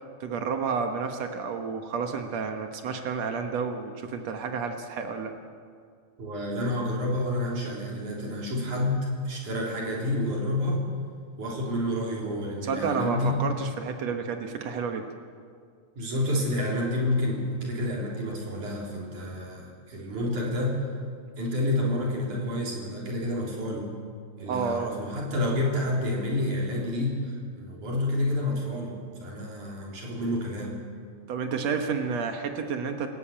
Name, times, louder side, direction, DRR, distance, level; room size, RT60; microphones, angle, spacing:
voice 1, 0.2-5.4 12.6-15.1 24.5-25.0 31.3-33.1, right 5 dB, 85° right, 5 dB, 1.5 m, -30 dB
voice 2, 6.2-10.8 11.4-13.3 15.9-20.8 21.4-23.9 24.4-30.8, left 1 dB, 45° right, -2 dB, 5.0 m, -29 dB
28.0 x 15.0 x 8.7 m, 2.1 s
omnidirectional pair, 4.9 m